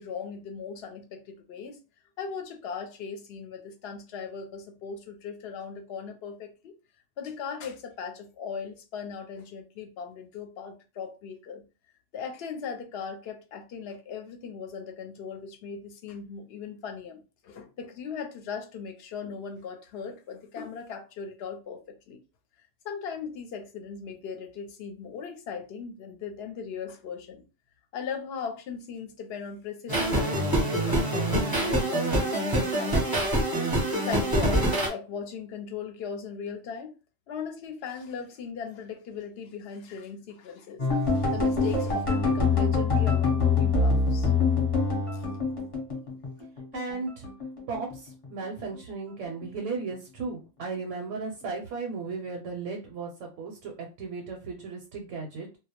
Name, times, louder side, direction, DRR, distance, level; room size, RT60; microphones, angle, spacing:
voice 1, 0.0-1.8 2.2-6.7 7.2-11.6 12.1-22.2 22.8-27.4 27.9-33.2 34.0-37.0 37.3-44.3, left 6 dB, 65° left, 0.7 m, -38 dB
sound 1, 29.9-34.9, right 1 dB, 25° right, 0.6 m, -25 dB
sound 2, 40.8-47.0 47.2-48.3 48.6-48.9 49.2-49.4, left 4 dB, 30° left, 0.8 m, -25 dB
voice 2, 46.7-47.3 47.7-55.5, right 4 dB, 80° right, 0.9 m, -35 dB
2.2 x 2.0 x 2.8 m
omnidirectional pair, 1.3 m